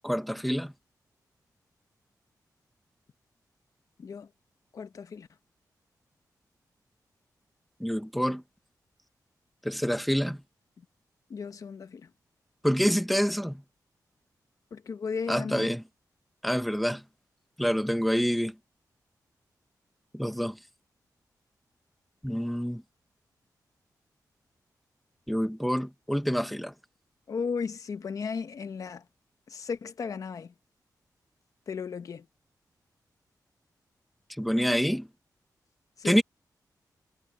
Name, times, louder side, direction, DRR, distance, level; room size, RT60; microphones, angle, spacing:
voice 1, 0.0-0.7 7.8-8.4 9.6-10.4 12.6-13.6 15.3-15.8 16.4-17.0 17.6-18.5 20.1-20.6 22.2-22.8 25.3-26.7 34.4-35.1 36.0-36.2, equal, ahead, 1.0 m, -27 dB
voice 2, 4.7-5.3 10.8-10.9 11.3-12.1 14.7-15.7 27.3-29.0 29.5-30.5 31.7-32.3 36.0-36.2, left 5 dB, 55° left, 1.0 m, -35 dB
wide cardioid pair, 175°, 7 cm